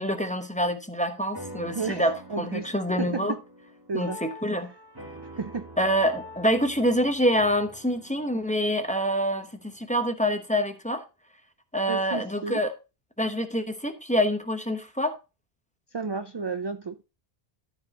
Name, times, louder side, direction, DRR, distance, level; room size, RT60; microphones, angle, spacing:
voice 1, 0.0-3.3 3.9-4.7 5.8-11.0 11.7-12.7 13.2-15.1, equal, 10° left, 0.9 m, -26 dB
sound 1, 1.3-10.1, equal, 20° right, 1.4 m, -46 dB
voice 2, 1.8-2.7 3.0-3.4 3.9-4.2 5.4-5.7 11.9-12.6 15.9-17.0, right 5 dB, 40° right, 0.4 m, -32 dB
13.0 x 4.8 x 3.8 m
omnidirectional pair, 1.0 m